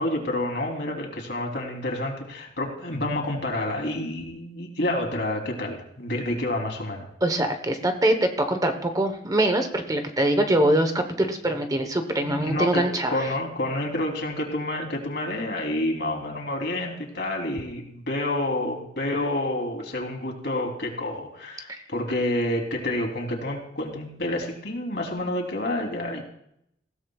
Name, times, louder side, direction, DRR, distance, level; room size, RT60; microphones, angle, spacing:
voice 1, 0.0-7.1 12.2-26.2, left 1 dB, 65° left, 1 dB, 3.2 m, -29 dB
voice 2, 7.2-13.3 21.7-21.8, right 1 dB, 20° right, 7 dB, 1.1 m, -23 dB
20.0 x 16.0 x 2.4 m, 0.74 s
head